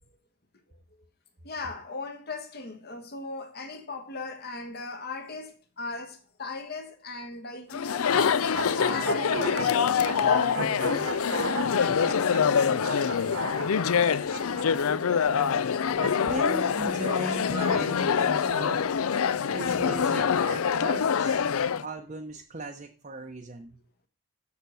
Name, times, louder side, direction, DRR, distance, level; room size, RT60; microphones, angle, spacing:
voice 1, 1.4-10.7 11.3-12.2, left 3 dB, 45° left, 1.3 m, -37 dB
Chatter, 7.7-21.8, left 6 dB, 70° left, 0.5 m, -25 dB
sound 1, 8.6-14.6, right 3 dB, 65° right, 1.3 m, -36 dB
voice 2, 16.0-19.0 19.5-21.5 21.8-23.8, right 2 dB, 35° right, 0.8 m, -38 dB
6.8 x 6.8 x 6.3 m
head